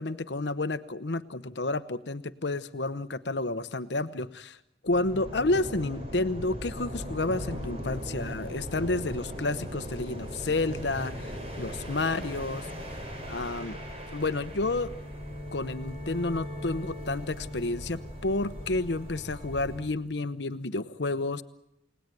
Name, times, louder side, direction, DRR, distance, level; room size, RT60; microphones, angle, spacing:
voice 1, 0.0-4.6 4.8-12.7 13.3-13.8 14.1-14.9 15.5-21.4, left 2 dB, 70° left, 12 dB, 1.0 m, -30 dB
sound 1, 4.9-19.9, equal, 35° right, 6.3 m, -39 dB
29.5 x 18.5 x 9.2 m, 0.84 s
head